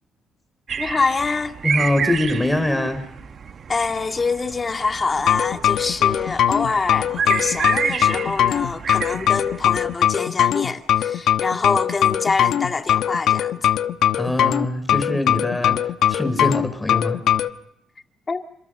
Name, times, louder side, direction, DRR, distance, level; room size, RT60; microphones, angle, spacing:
sound 1, 0.7-9.9, right 6 dB, 50° right, 1.3 m, -30 dB
voice 1, 0.8-1.6 3.7-13.7 18.3-18.4, left 4 dB, 30° left, 2.2 m, -25 dB
voice 2, 1.6-3.0 14.2-15.8 16.1-17.2, left 1 dB, 10° left, 4.9 m, -23 dB
sound 2, 5.2-17.5, left 10 dB, 80° left, 1.1 m, -20 dB
28.5 x 26.5 x 6.6 m
cardioid pair, 90°, 0 cm